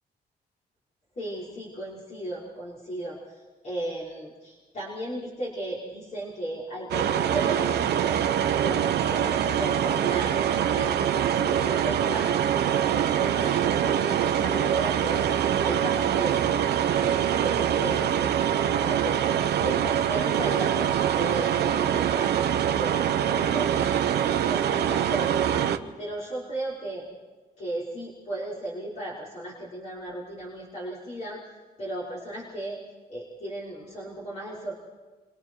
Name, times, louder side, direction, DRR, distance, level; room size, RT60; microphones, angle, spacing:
voice 1, 1.2-8.2 8.6-12.3 12.6-18.3 18.7-19.2 19.6-23.7 24.1-25.4 26.0-27.1 27.6-31.4 31.8-32.8 33.1-34.7, right 1 dB, 45° left, -6 dB, 5.7 m, -35 dB
sound 1, 6.9-25.8, right 9 dB, 85° right, 1.1 m, -24 dB
29.0 x 26.0 x 4.8 m, 1.3 s
wide cardioid pair, 150°, 17 cm